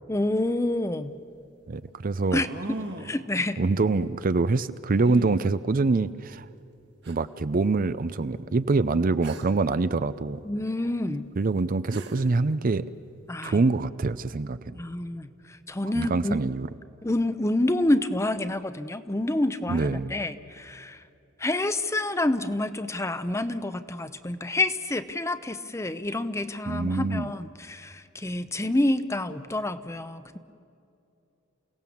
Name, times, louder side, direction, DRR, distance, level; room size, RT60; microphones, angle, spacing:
voice 1, 0.1-1.1 2.3-2.5 3.0-3.6 10.4-11.3 13.3-13.6 14.8-15.3 15.7-16.4 17.0-21.0 21.4-30.4, left 1 dB, 15° left, 12 dB, 0.6 m, -28 dB
sound 1, 0.9-1.0 2.4-3.2 5.0-5.4 6.4-6.5 7.0-7.1 9.2-9.6 11.5-11.6 11.9-12.4, right 1 dB, 60° right, 1.7 m, -37 dB
voice 2, 1.7-2.4 3.6-6.5 7.1-10.4 11.4-12.9 13.4-14.8 15.9-16.7 19.7-20.2 26.7-27.3, right 3 dB, 45° right, 14 dB, 0.5 m, -25 dB
29.0 x 17.5 x 7.2 m, 2.7 s
head